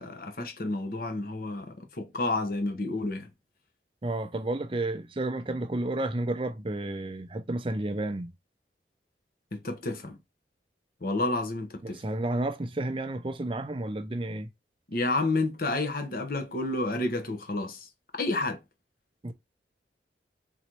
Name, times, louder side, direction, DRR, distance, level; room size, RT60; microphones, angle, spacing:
voice 1, 0.0-3.3 9.5-10.2 11.0-12.0 14.9-17.9 18.1-18.6, left 2 dB, 55° left, 1.0 m, -30 dB
voice 2, 4.0-8.3 11.8-14.5 19.2-19.3, right 2 dB, 30° right, 0.6 m, -31 dB
3.8 x 3.1 x 4.5 m
head